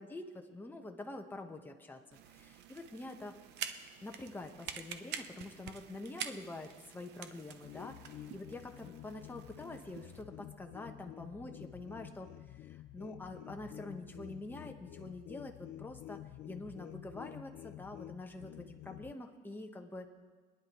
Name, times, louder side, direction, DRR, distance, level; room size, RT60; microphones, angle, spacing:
voice 1, 0.0-2.0 2.3-3.4 4.0-12.3 12.7-20.1, left 2 dB, 10° left, 3 dB, 1.2 m, -46 dB
sound 1, 2.1-10.2, right 9 dB, 80° right, 0.8 m, -47 dB
sound 2, 7.6-19.1, left 14 dB, 70° left, 0.4 m, -50 dB
24.5 x 10.5 x 3.1 m, 1.4 s
cardioid pair, 110°, 17 cm